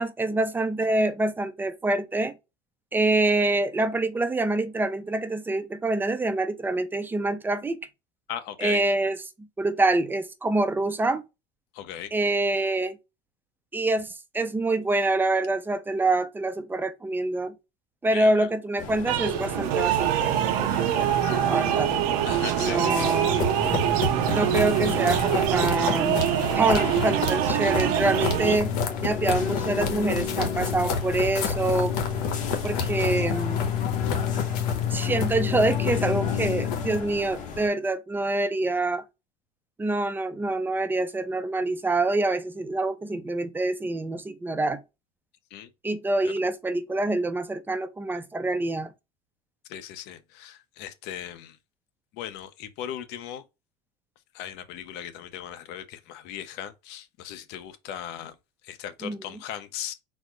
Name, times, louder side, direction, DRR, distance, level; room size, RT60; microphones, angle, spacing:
voice 1, 0.0-2.3 2.9-7.8 8.6-9.2 9.6-11.2 12.1-13.0 13.7-17.5 18.0-21.9 22.6-23.4 24.3-26.3 26.5-28.7 29.0-32.0 32.6-33.6 34.9-39.0 39.8-44.8 45.8-48.9 59.0-59.4, right 2 dB, 10° right, 0.4 m, -26 dB
voice 2, 8.3-8.8 11.7-12.1 18.1-18.5 22.2-23.1 45.5-45.7 49.7-51.6 52.1-53.4 54.3-58.4 58.6-59.9, left 10 dB, 60° left, 0.7 m, -38 dB
sound 1, 18.8-37.7, left 6 dB, 40° left, 1.0 m, -37 dB
sound 2, 19.1-28.6, right 11 dB, 70° right, 0.7 m, -24 dB
sound 3, 23.3-37.0, left 6 dB, 85° left, 1.1 m, -29 dB
4.1 x 2.0 x 4.4 m
supercardioid pair, 130°, 20 cm